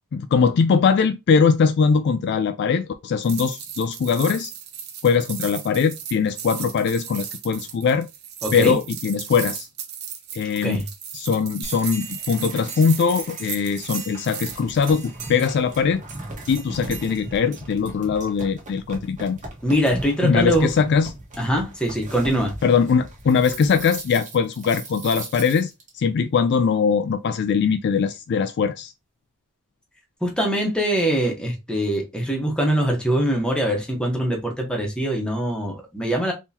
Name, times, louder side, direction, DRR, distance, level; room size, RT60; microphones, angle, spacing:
voice 1, 0.1-4.5 5.0-8.1 8.5-9.7 10.3-10.8 11.1-16.0 16.5-19.4 20.2-21.1 22.6-28.9, left 6 dB, 55° left, 0.3 m, -21 dB
sound 1, 3.2-14.6, right 8 dB, 50° right, 0.7 m, -35 dB
voice 2, 8.4-8.7 10.6-10.8 19.6-20.7 21.4-22.5 30.2-36.3, right 1 dB, 5° left, 0.9 m, -23 dB
sound 2, 11.6-25.9, right 2 dB, 35° right, 1.2 m, -37 dB
3.7 x 2.9 x 2.7 m
head